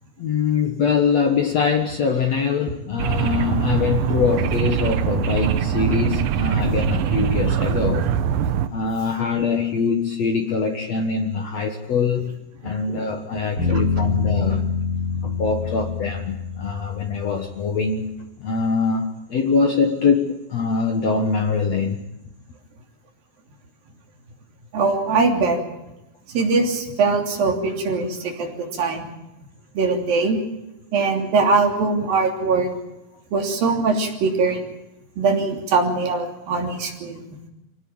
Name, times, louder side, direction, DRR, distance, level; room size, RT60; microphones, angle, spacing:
voice 1, 0.2-8.1 8.7-12.3 12.6-14.7 15.2-18.1 18.4-22.1, left 5 dB, 80° left, 4 dB, 1.5 m, -23 dB
sound 1, 3.0-8.7, right 9 dB, 85° right, 2.0 m, -22 dB
voice 2, 12.6-13.0 13.7-13.8 24.7-25.6 26.3-29.1 29.7-30.4 30.9-32.7 33.3-34.6 35.2-37.2, right 4 dB, 50° right, 2 dB, 4.5 m, -21 dB
sound 2, 13.6-17.7, left 5 dB, 20° left, 7.4 m, -25 dB
25.0 x 18.0 x 8.7 m, 0.94 s
omnidirectional pair, 5.4 m